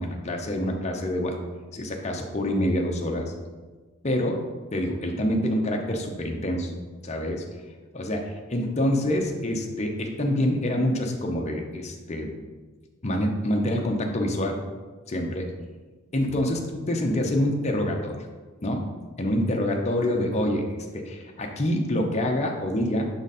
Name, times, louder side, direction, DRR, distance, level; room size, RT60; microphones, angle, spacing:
voice 1, 0.0-1.4 1.7-3.3 4.0-4.4 4.7-6.7 7.0-7.4 7.9-12.3 13.0-14.6 15.1-15.5 16.1-18.1 18.6-18.8 19.2-23.1, left 1 dB, 30° left, 2 dB, 0.6 m, -26 dB
6.2 x 3.9 x 4.1 m, 1.3 s
head